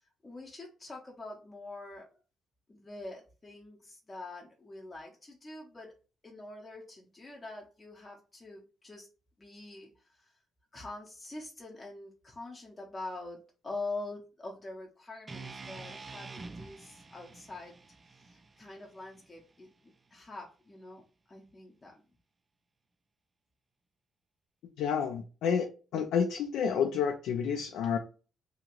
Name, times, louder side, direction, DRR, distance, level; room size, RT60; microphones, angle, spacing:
voice 1, 0.0-2.2 2.7-5.9 6.2-9.1 9.4-10.4 10.7-17.8 18.0-22.0, left 2 dB, 25° left, 0.6 m, -45 dB
sound 1, 15.3-19.5, right 3 dB, 25° right, 0.3 m, -47 dB
voice 2, 24.8-28.0, left 7 dB, 85° left, 0.3 m, -30 dB
2.8 x 2.5 x 2.9 m
cardioid pair, 90°, 0 cm